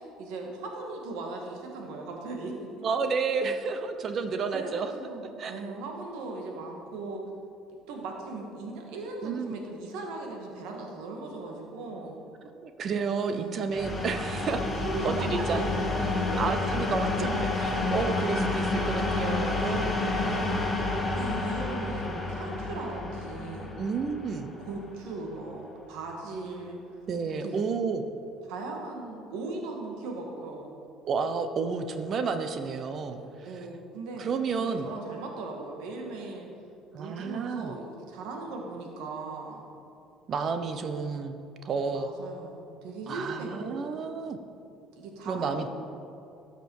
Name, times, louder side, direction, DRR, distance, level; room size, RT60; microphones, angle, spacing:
voice 1, 0.0-2.5 4.0-7.2 7.9-12.2 13.3-13.6 14.8-16.4 19.5-20.6 21.1-23.7 24.6-26.8 27.3-27.6 28.5-30.7 33.2-34.3 34.6-36.5 36.9-39.6 41.9-43.8 44.9-45.7, right 3 dB, 80° right, 1 dB, 1.8 m, -38 dB
voice 2, 2.8-4.9 5.4-5.7 9.2-9.6 12.6-14.6 15.0-15.6 16.4-20.2 23.8-24.5 27.1-28.0 31.1-33.5 34.2-34.9 36.9-37.8 40.3-41.4 41.6-42.1 43.1-44.4 45.2-45.7, right 5 dB, 50° right, 8 dB, 0.8 m, -31 dB
sound 1, 13.7-25.3, left 2 dB, 15° left, 2.5 m, -30 dB
13.0 x 6.9 x 4.8 m, 2.6 s
supercardioid pair, 85°, 0 cm